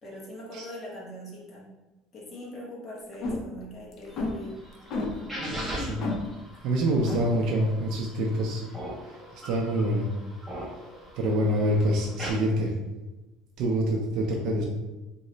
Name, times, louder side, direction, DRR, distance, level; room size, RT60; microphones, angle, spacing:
voice 1, 0.0-1.7 2.1-4.6 5.1-5.3 5.7-6.0 11.2-11.6, left 1 dB, 25° left, -5 dB, 0.9 m, -41 dB
sound 1, 3.1-3.6 3.9-4.3 4.9-5.1 5.5-5.7 6.0-6.2 6.7-6.8 7.1-7.2, left 3 dB, 45° left, 0.4 m, -29 dB
sound 2, 4.1-12.3, equal, 5° right, 0.6 m, -41 dB
voice 2, 5.4-6.0 6.6-8.6 9.3-10.1 11.2-12.7 13.6-14.6, right 1 dB, 55° right, 0 dB, 0.4 m, -26 dB
3.0 x 2.1 x 3.8 m, 1.1 s
cardioid pair, 170°, 0 cm